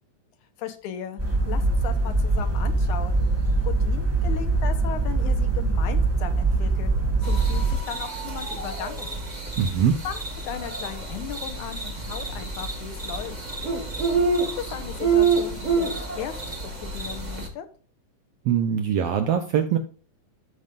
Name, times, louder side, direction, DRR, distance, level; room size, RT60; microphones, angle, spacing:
voice 1, 0.6-3.2 3.6-6.9 7.2-9.2 10.0-10.2 10.5-13.4 14.5-15.9 16.2-16.5 16.8-17.7, left 10 dB, 85° left, 8 dB, 2.4 m, -36 dB
sound 1, 1.2-7.8, right 3 dB, 10° right, 1.5 m, -23 dB
sound 2, 7.2-17.5, right 4 dB, 30° right, 0.8 m, -28 dB
voice 2, 9.6-10.0 18.4-19.8, right 8 dB, 75° right, 7 dB, 1.4 m, -22 dB
13.0 x 5.3 x 2.5 m, 0.39 s
omnidirectional pair, 3.4 m